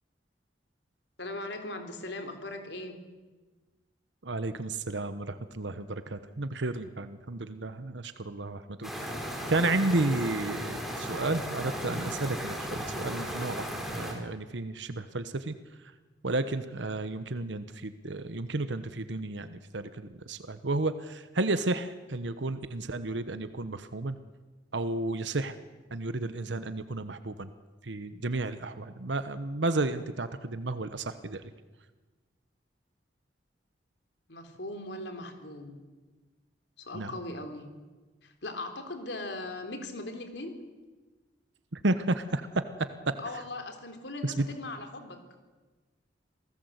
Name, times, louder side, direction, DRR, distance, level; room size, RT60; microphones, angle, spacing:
voice 1, 1.2-3.0 34.3-35.8 36.8-37.7 38.2-40.5 43.2-45.2, left 2 dB, 75° left, 6 dB, 3.7 m, -39 dB
voice 2, 4.2-9.1 9.5-13.7 13.9-15.5 16.2-19.9 20.3-24.2 24.7-25.5 25.9-27.5 27.8-31.4 36.9-37.1 41.7-42.6 44.2-44.5, right 2 dB, 85° right, 11 dB, 1.1 m, -32 dB
sound 1, 8.8-14.1, equal, ahead, 4.6 m, -35 dB
27.5 x 18.5 x 8.1 m, 1.3 s
head